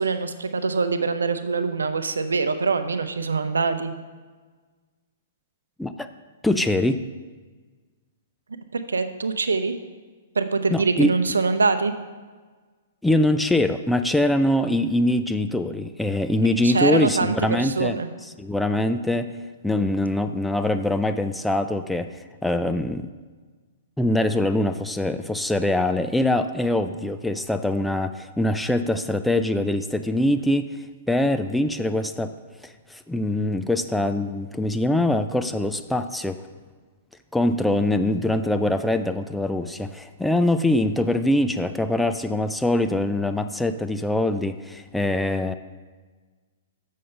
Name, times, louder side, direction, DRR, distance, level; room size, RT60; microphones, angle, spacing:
voice 1, 0.0-3.9 8.7-9.7 10.4-11.9 16.6-18.1, right 4 dB, 80° right, 10 dB, 0.6 m, -24 dB
voice 2, 6.4-7.0 10.7-11.1 13.0-18.0 18.4-19.4 19.6-22.1 22.4-23.1 24.0-30.7 31.1-32.3 32.6-36.4 37.3-45.5, left 1 dB, 5° left, 8 dB, 0.4 m, -23 dB
7.5 x 6.5 x 5.5 m, 1.4 s
figure-of-eight pair, 115°, 0 cm